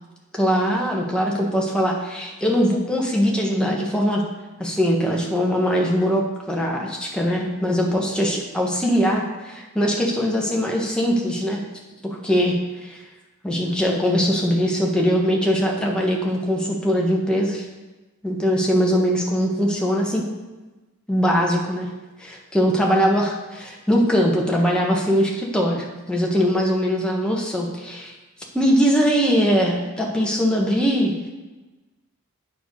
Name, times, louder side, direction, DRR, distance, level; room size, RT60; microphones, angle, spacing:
voice 1, 0.3-4.2 4.6-11.6 12.0-13.0 13.4-17.7 18.2-20.2 21.1-21.9 22.2-28.1 28.5-31.1, equal, 5° left, -2 dB, 1.4 m, -21 dB
9.1 x 6.6 x 5.5 m, 1.1 s
head